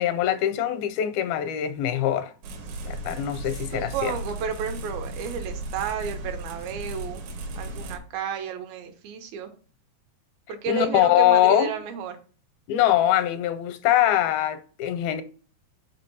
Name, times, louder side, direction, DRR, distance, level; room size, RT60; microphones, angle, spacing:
voice 1, 0.0-2.3 2.8-4.1 10.7-11.7 12.7-15.2, left 12 dB, 85° left, 2.6 m, -23 dB
sound 1, 2.4-8.0, right 2 dB, 65° right, 2.0 m, -35 dB
voice 2, 3.7-7.2 7.6-9.5 10.5-12.2, right 6 dB, 80° right, 2.9 m, -32 dB
6.2 x 4.6 x 5.4 m
omnidirectional pair, 4.2 m